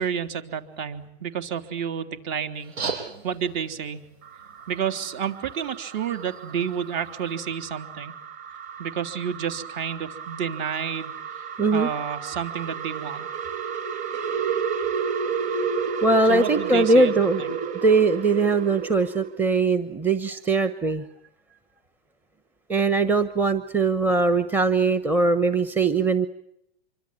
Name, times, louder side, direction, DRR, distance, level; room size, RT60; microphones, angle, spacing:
voice 1, 0.0-2.8 3.2-4.0 4.7-8.2 8.8-11.4 11.7-13.3 16.3-17.6, right 7 dB, 50° right, 9 dB, 3.5 m, -30 dB
sound 1, 2.5-7.5, right 5 dB, 90° right, 7.4 m, -39 dB
sound 2, 4.2-19.4, right 6 dB, 25° right, 2.5 m, -32 dB
voice 2, 11.6-11.9 16.0-17.4 17.8-21.1 22.7-26.3, right 3 dB, 5° right, 11 dB, 1.0 m, -21 dB
26.5 x 24.5 x 7.6 m, 0.75 s
supercardioid pair, 155°, 32 cm